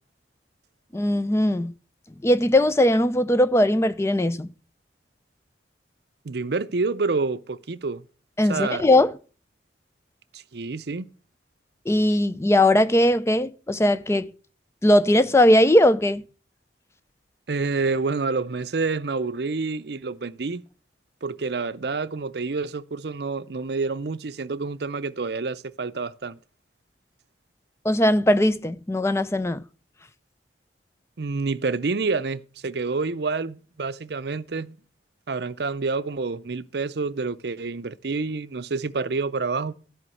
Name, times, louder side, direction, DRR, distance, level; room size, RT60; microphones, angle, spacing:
voice 1, 0.9-1.7 2.2-4.5 8.4-9.1 11.9-14.3 14.8-16.2 27.8-29.6, left 1 dB, 15° left, 0.4 m, -19 dB
voice 2, 6.2-8.0 8.5-8.9 10.3-11.1 17.5-20.6 21.2-26.4 31.2-34.7 35.3-39.7, right 4 dB, 60° right, 0.6 m, -28 dB
13.0 x 5.1 x 7.7 m
head